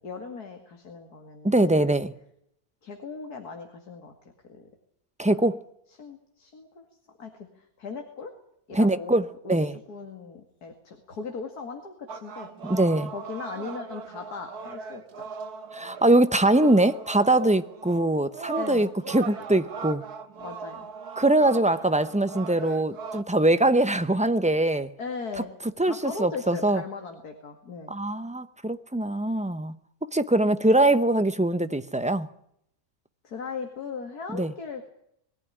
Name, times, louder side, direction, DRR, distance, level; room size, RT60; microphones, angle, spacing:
voice 1, 0.0-1.8 2.8-4.7 5.3-5.4 6.0-6.9 7.2-8.3 8.7-9.6 9.9-12.5 13.1-15.3 18.5-19.2 20.4-20.9 25.0-25.5 25.8-28.0 33.2-34.9, left 4 dB, 85° left, 2.7 m, -38 dB
voice 2, 1.4-2.1 5.2-5.6 8.7-9.8 12.6-13.1 15.7-20.0 21.2-24.9 25.8-26.8 27.9-29.7 30.1-32.3 34.3-34.5, right 1 dB, 10° right, 0.5 m, -22 dB
sound 1, 12.1-23.2, right 5 dB, 85° right, 1.9 m, -39 dB
22.5 x 15.0 x 9.9 m
omnidirectional pair, 1.6 m